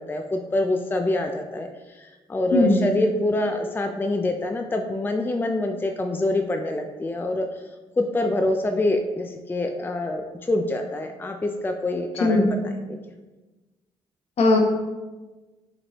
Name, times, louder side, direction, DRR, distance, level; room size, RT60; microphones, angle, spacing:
voice 1, 0.0-7.5 8.0-13.0, left 2 dB, 20° left, 5 dB, 0.4 m, -26 dB
voice 2, 2.5-2.8 12.2-12.5 14.4-14.6, left 2 dB, 65° left, 1 dB, 0.9 m, -18 dB
4.9 x 3.2 x 3.0 m, 1.2 s
supercardioid pair, 65°, 12 cm